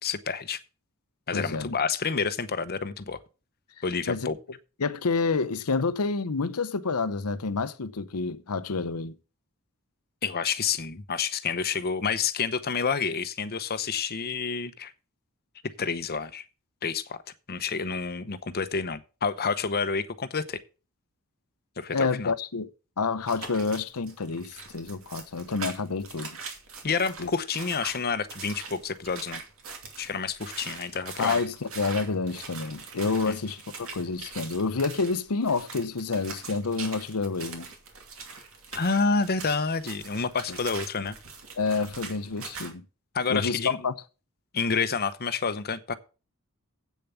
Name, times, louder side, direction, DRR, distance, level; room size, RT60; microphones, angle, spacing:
voice 1, 0.0-0.6 1.3-3.2 3.8-4.4 10.2-14.9 15.8-16.4 16.8-17.2 17.5-20.6 21.8-22.3 26.8-29.4 30.0-31.4 33.3-33.4 38.7-41.2 43.1-43.8 44.5-45.9, left 5 dB, 45° left, 0.8 m, -29 dB
voice 2, 1.3-1.7 4.1-4.3 4.8-9.1 21.9-22.7 23.0-26.4 27.2-27.3 31.2-37.7 40.5-40.6 41.6-42.8 43.3-43.9, left 4 dB, 75° left, 0.8 m, -28 dB
sound 1, 23.3-42.7, right 5 dB, 65° right, 2.6 m, -42 dB
8.4 x 7.0 x 6.9 m
head